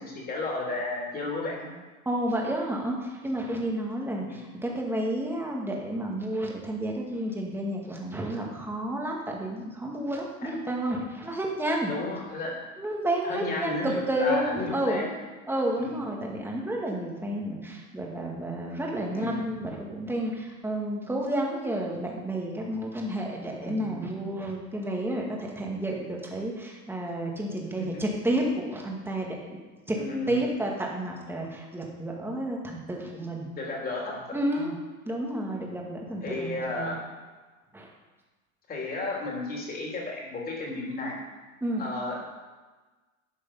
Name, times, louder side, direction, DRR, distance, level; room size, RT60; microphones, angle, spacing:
voice 1, 0.0-1.7 10.4-10.5 11.9-12.5 13.2-15.1 15.8-16.0 19.1-19.4 23.6-23.9 27.8-27.9 30.0-30.4 33.5-34.2 34.5-34.7 36.2-37.0 38.7-41.2 41.8-42.2, left 2 dB, 20° left, -3 dB, 3.4 m, -33 dB
voice 2, 2.1-11.9 12.8-15.1 15.5-29.6 29.9-30.0 30.3-33.5 34.3-34.8 35.1-37.0 37.7-37.9 41.6-41.9, right 1 dB, 5° right, -1 dB, 2.0 m, -31 dB
12.0 x 7.0 x 5.6 m, 1.3 s
supercardioid pair, 130°, 43 cm